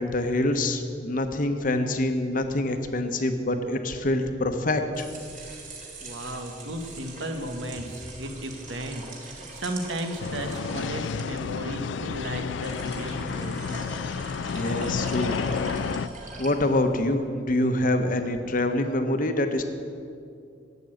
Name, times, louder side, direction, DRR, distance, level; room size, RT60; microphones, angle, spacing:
voice 1, 0.0-5.1 14.5-15.3 15.6-15.9 16.4-19.6, left 1 dB, 45° left, 7 dB, 0.9 m, -26 dB
sound 1, 4.8-17.1, right 2 dB, 40° right, 2.2 m, -42 dB
voice 2, 6.0-13.9, right 1 dB, 90° right, 5 dB, 1.3 m, -34 dB
sound 2, 10.2-16.1, left 6 dB, 75° left, 0.4 m, -31 dB
12.0 x 8.3 x 7.7 m, 2.5 s
head